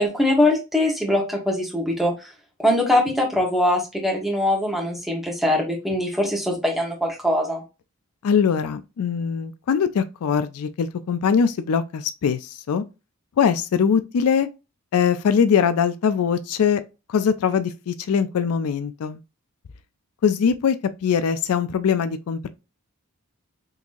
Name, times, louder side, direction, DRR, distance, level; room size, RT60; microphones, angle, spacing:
voice 1, 0.0-2.1 2.6-7.6, left 1 dB, ahead, 1.1 m, -22 dB
voice 2, 8.2-12.8 13.4-14.5 14.9-16.8 17.1-19.2 20.2-20.8 21.0-22.5, left 7 dB, 80° left, 0.4 m, -22 dB
3.8 x 2.9 x 2.5 m
head